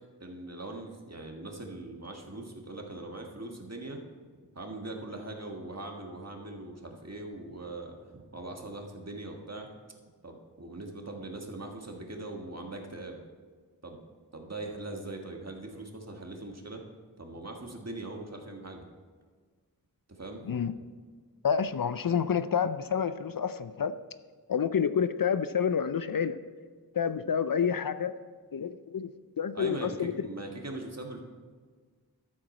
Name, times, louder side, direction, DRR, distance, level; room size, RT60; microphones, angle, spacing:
voice 1, 0.2-4.0 4.5-9.7 10.2-13.2 13.8-14.0 14.3-16.8 17.2-18.8 20.1-20.4 20.7-20.8 29.5-31.2, right 2 dB, 45° right, 2 dB, 1.5 m, -41 dB
voice 2, 21.4-23.9 24.5-26.4 27.0-28.1 28.5-29.1 29.4-30.1, left 7 dB, 60° left, 12 dB, 0.5 m, -28 dB
13.0 x 7.6 x 4.3 m, 1.5 s
wide cardioid pair, 55°, 38 cm